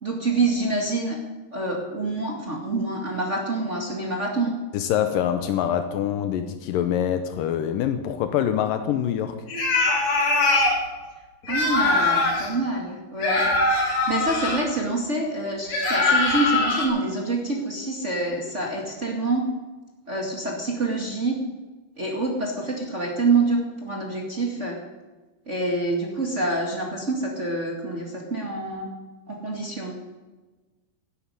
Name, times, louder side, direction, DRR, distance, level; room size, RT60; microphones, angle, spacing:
voice 1, 0.0-1.2 1.5-4.5 11.5-19.5 20.1-21.4 22.0-24.8 25.4-28.9 29.3-30.0, right 2 dB, 50° right, -1 dB, 0.8 m, -26 dB
voice 2, 4.7-9.4, left 10 dB, 85° left, 8 dB, 1.9 m, -25 dB
sound 1, 9.5-10.8 11.4-12.5 13.2-14.6 15.7-16.9, left 2 dB, 40° left, 3.8 m, -22 dB
12.0 x 11.5 x 9.5 m, 1.2 s
omnidirectional pair, 5.1 m